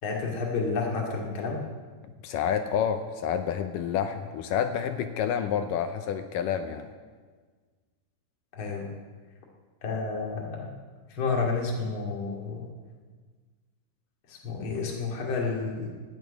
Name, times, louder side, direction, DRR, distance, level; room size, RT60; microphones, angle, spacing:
voice 1, 0.0-1.6 8.5-8.9 9.8-10.7 11.1-12.7 14.3-15.9, left 4 dB, 35° left, -1 dB, 2.7 m, -30 dB
voice 2, 2.0-6.9, left 8 dB, 75° left, 7 dB, 2.1 m, -29 dB
13.0 x 8.7 x 9.3 m, 1.5 s
omnidirectional pair, 4.5 m